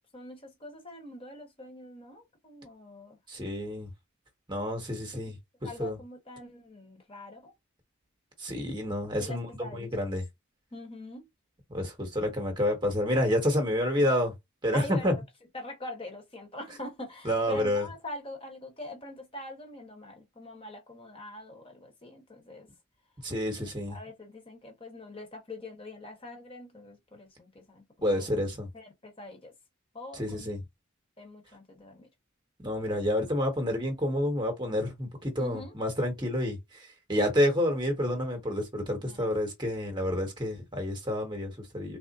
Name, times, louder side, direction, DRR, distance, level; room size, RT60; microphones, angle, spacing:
voice 1, 0.1-3.2 5.6-7.5 9.2-10.0 10.7-11.3 14.7-15.2 15.5-22.7 23.6-28.4 28.7-29.5 29.9-30.6 31.2-32.1 35.4-35.7 39.0-39.4, left 1 dB, 25° left, 1.0 m, -44 dB
voice 2, 3.3-3.9 4.5-5.4 5.6-6.0 8.4-10.2 11.7-14.3 14.6-15.1 17.2-17.9 23.2-24.0 28.0-28.7 30.1-30.6 32.6-42.0, left 1 dB, 20° right, 1.0 m, -29 dB
3.6 x 2.0 x 3.9 m
head